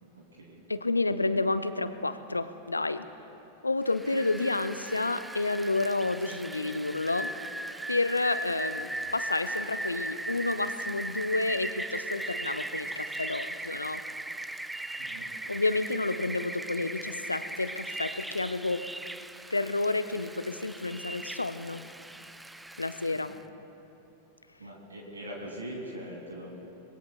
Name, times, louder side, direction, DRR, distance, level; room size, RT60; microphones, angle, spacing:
voice 1, 0.0-0.6 15.0-15.3 23.1-23.2 24.6-26.6, equal, 70° right, -1 dB, 2.5 m, -42 dB
voice 2, 0.7-3.0 3.6-7.3 7.9-14.0 15.5-18.8 19.5-21.8 22.8-23.3, left 2 dB, 80° left, 12 dB, 0.5 m, -30 dB
Rain, 3.9-23.4, right 1 dB, 5° right, 0.4 m, -38 dB
25.0 x 20.5 x 2.3 m, 2.9 s
figure-of-eight pair, 90°, 0 cm